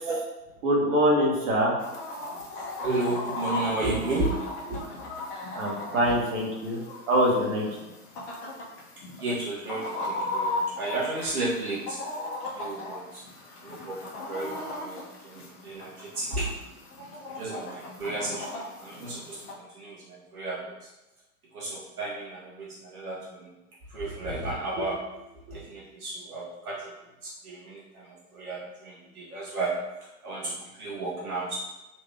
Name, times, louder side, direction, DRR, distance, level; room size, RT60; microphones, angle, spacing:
voice 1, 0.6-1.7 5.5-6.8 7.1-7.6, equal, 55° right, -3 dB, 1.2 m, -23 dB
Chicken rooster, 1.8-19.5, left 2 dB, 20° left, 0.4 m, -37 dB
voice 2, 2.6-5.1 6.1-6.2 9.2-12.0 12.5-13.2 13.6-14.0 14.3-16.5 17.3-20.9 21.5-23.5 23.9-25.0 25.3-26.9 27.2-29.7 30.2-31.5, right 2 dB, 75° right, -6 dB, 1.1 m, -33 dB
3.3 x 2.9 x 3.2 m, 1.0 s
figure-of-eight pair, 100°, 45 cm